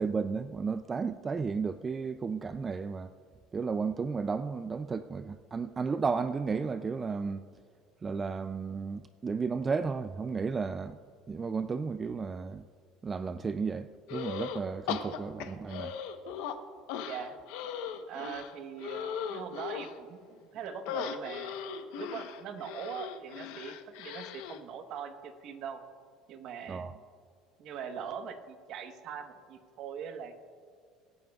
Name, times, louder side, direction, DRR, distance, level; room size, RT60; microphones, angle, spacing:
voice 1, 0.0-3.1 3.5-7.4 8.0-11.0 11.3-12.7 13.0-16.0 26.7-26.9, right 5 dB, 20° right, 0.3 m, -33 dB
sound 1, 14.1-14.6 14.9-16.6 16.9-20.0 20.9-24.6, left 8 dB, 85° left, 0.9 m, -38 dB
voice 2, 17.0-17.4 18.1-21.5 22.0-25.8 26.3-27.0 27.6-30.4, right 7 dB, 55° right, 1.1 m, -41 dB
24.5 x 9.5 x 2.3 m
cardioid pair, 145°, 0 cm